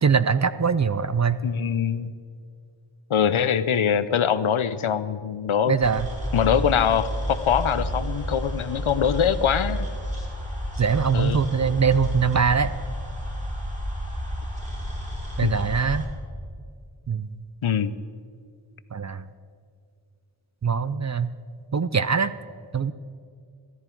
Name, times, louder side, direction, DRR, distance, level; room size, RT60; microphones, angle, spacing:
voice 1, 0.0-1.4 5.7-6.1 10.8-12.7 15.4-16.1 17.1-17.3 18.9-19.3 20.6-21.3 21.7-22.3 22.7-22.9, right 6 dB, 35° right, 14 dB, 0.4 m, -22 dB
voice 2, 1.4-2.1 3.1-5.7 6.3-9.9 11.1-11.4 15.4-15.5 17.6-17.9, left 8 dB, 70° left, 14 dB, 0.7 m, -23 dB
sound 1, 5.8-16.1, equal, 15° right, 3.9 m, -31 dB
14.0 x 14.0 x 4.6 m, 2.2 s
wide cardioid pair, 65°, 50 cm